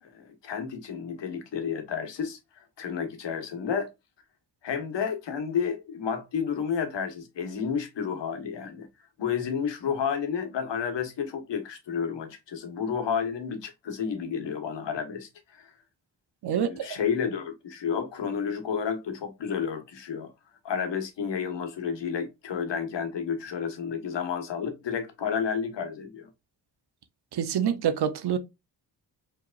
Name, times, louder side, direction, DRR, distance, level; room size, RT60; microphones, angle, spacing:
voice 1, 0.0-3.9 4.6-8.9 9.2-15.7 16.5-20.3 20.6-26.3, left 7 dB, 75° left, 1.3 m, -31 dB
voice 2, 16.4-17.0 27.3-28.4, right 8 dB, 60° right, 0.8 m, -27 dB
4.7 x 3.5 x 2.4 m
cardioid pair, 65°, 44 cm